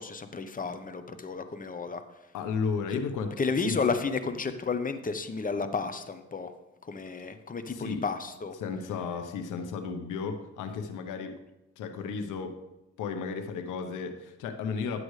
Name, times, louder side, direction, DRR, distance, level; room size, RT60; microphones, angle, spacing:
voice 1, 0.0-2.0 3.4-6.5 6.8-8.5, left 4 dB, 25° left, 9 dB, 0.8 m, -32 dB
voice 2, 2.3-3.3 3.6-3.8 7.7-8.0 8.6-11.4 11.8-12.6 13.0-15.0, left 5 dB, 90° left, 6 dB, 1.0 m, -33 dB
11.0 x 7.8 x 3.3 m, 0.99 s
cardioid pair, 90°, 30 cm